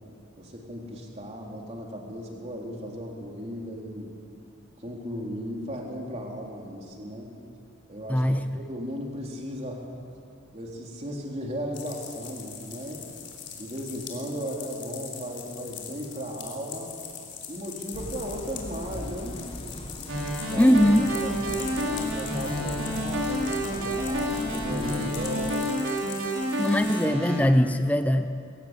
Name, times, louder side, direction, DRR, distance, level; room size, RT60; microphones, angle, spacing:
voice 1, 0.4-4.1 4.8-7.3 7.9-8.2 8.5-9.9 10.5-13.0 13.6-16.9 17.5-19.4 20.5-20.8 21.2-25.6, equal, 35° right, -1 dB, 3.5 m, -36 dB
voice 2, 8.1-8.4 20.6-21.1 26.6-28.3, equal, 5° left, 8 dB, 0.6 m, -21 dB
sound 1, 11.7-27.1, left 7 dB, 60° left, 3.6 m, -42 dB
sound 2, 17.9-25.5, left 1 dB, 25° left, 1.1 m, -39 dB
sound 3, 20.1-27.4, equal, 85° right, 4.8 m, -29 dB
22.0 x 18.0 x 8.1 m, 2.4 s
head